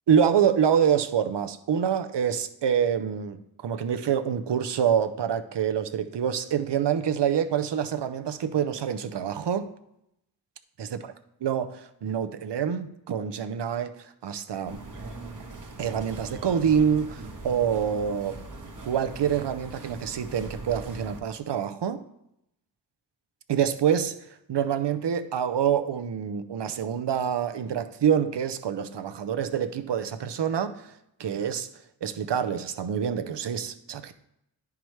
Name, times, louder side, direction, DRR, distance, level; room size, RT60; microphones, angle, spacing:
voice 1, 0.1-9.7 10.8-11.1 11.4-13.9 14.2-14.8 15.8-18.4 18.8-22.0 23.5-24.1 24.5-30.9 31.2-31.7 32.0-34.1, right 8 dB, 80° right, 10 dB, 0.6 m, -26 dB
sound 1, 14.6-21.2, right 2 dB, 45° right, 1.0 m, -41 dB
10.5 x 4.7 x 3.1 m, 0.80 s
wide cardioid pair, 75°, 42 cm